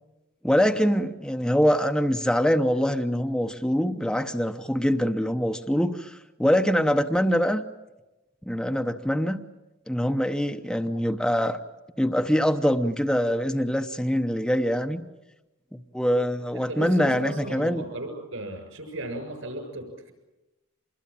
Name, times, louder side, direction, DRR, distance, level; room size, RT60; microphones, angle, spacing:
voice 1, 0.4-7.6 8.4-9.4 9.9-11.6 12.0-15.0 15.7-17.8, equal, 5° left, 6 dB, 0.8 m, -24 dB
voice 2, 16.5-20.1, right 1 dB, 70° right, 6 dB, 6.9 m, -35 dB
26.5 x 21.0 x 8.9 m, 1.0 s
head